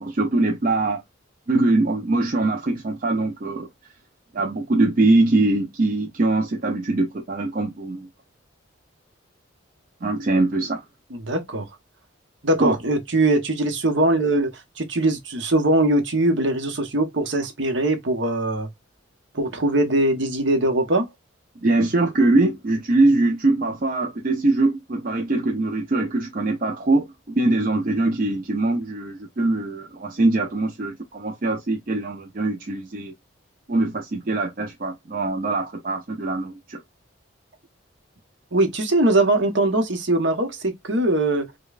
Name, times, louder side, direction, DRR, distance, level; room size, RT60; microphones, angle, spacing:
voice 1, 0.0-1.0 1.5-3.7 4.3-8.1 10.0-10.8 12.6-12.8 21.6-33.1 33.7-36.8, right 2 dB, 40° right, 0.5 m, -22 dB
voice 2, 11.3-11.7 12.4-14.5 14.8-18.7 19.3-21.1 38.5-41.5, right 2 dB, 65° right, 0.9 m, -21 dB
5.0 x 2.2 x 2.4 m
head